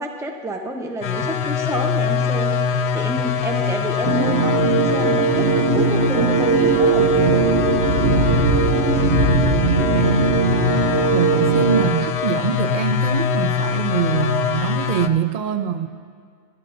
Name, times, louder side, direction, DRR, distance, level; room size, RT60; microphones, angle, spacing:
voice 1, 0.0-7.5, right 1 dB, 5° right, 3 dB, 0.7 m, -29 dB
sound 1, 1.0-15.1, left 7 dB, 85° left, 0.9 m, -23 dB
sound 2, 4.0-11.8, right 4 dB, 80° right, 1.1 m, -19 dB
voice 2, 9.9-10.4 11.1-15.9, right 7 dB, 55° right, 10 dB, 0.6 m, -24 dB
17.5 x 12.0 x 2.5 m, 2.1 s
omnidirectional pair, 1.1 m